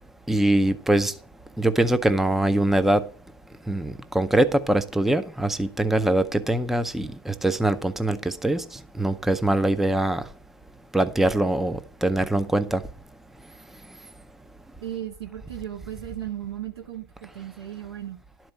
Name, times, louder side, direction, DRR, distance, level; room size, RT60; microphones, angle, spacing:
voice 1, 0.3-1.1 1.6-3.0 3.7-10.2 10.9-12.8, right 1 dB, ahead, 0.5 m, -23 dB
voice 2, 14.8-18.2, right 11 dB, 80° right, 2.0 m, -36 dB
11.5 x 4.6 x 7.2 m
hypercardioid pair, 100°, 13 cm